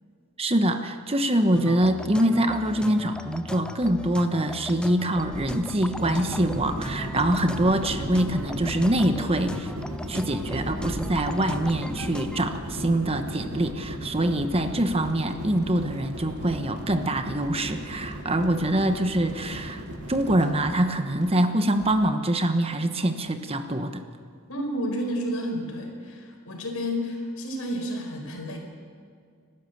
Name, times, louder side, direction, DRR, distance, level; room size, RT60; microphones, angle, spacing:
voice 1, 0.4-9.7 10.1-19.8 20.1-24.0, right 1 dB, 25° right, 7 dB, 1.0 m, -24 dB
sound 1, 1.5-12.4, left 1 dB, 5° left, 0.5 m, -39 dB
sound 2, 5.1-22.1, equal, 50° left, 2.2 m, -43 dB
sound 3, 6.0-20.8, equal, 65° right, 2.4 m, -35 dB
voice 2, 24.5-28.6, equal, 75° left, 3 dB, 4.6 m, -31 dB
30.0 x 12.5 x 8.0 m, 2.1 s
head